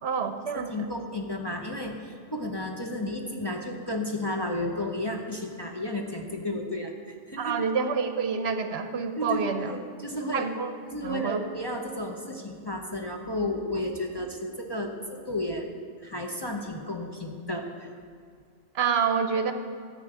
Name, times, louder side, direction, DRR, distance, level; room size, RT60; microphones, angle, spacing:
voice 1, 0.0-0.9 7.4-9.7 10.3-10.7 11.0-11.4 18.7-19.5, right 6 dB, 65° right, 8 dB, 0.9 m, -28 dB
voice 2, 0.5-7.6 9.2-10.5 10.9-15.7 16.0-17.9, left 1 dB, 25° left, 0 dB, 0.8 m, -33 dB
13.5 x 5.3 x 8.8 m, 2.1 s
omnidirectional pair, 1.2 m